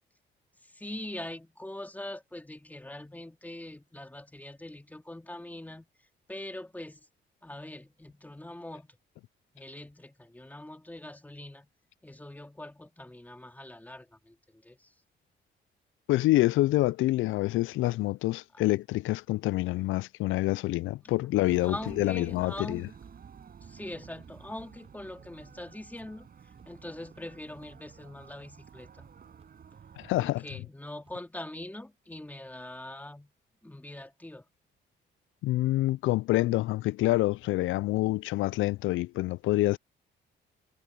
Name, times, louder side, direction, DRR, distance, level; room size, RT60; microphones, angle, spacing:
voice 1, 0.6-5.9 6.3-7.1 7.4-9.0 9.5-11.7 12.0-14.9 21.0-21.1 21.6-23.0 23.6-26.3 26.7-29.2 30.2-33.3 33.6-34.4, left 1 dB, 10° left, 2.4 m, -43 dB
voice 2, 16.1-22.8 30.0-30.4 35.4-39.8, left 17 dB, 80° left, 0.4 m, -27 dB
sound 1, 21.4-30.3, right 7 dB, 50° right, 5.4 m, -51 dB
sound 2, 21.9-22.0 22.4-22.5 23.0-23.1 23.6-23.7 24.2-24.3 24.8-24.9 25.4-25.5 26.0-26.1 26.6-26.7 27.1-27.2 27.6-27.9 28.2-28.3 28.8-28.9 29.4-29.5 30.0-30.1 30.5-30.6 31.0-31.1, right 4 dB, 30° right, 7.5 m, -59 dB
cardioid pair, 90°, 20 cm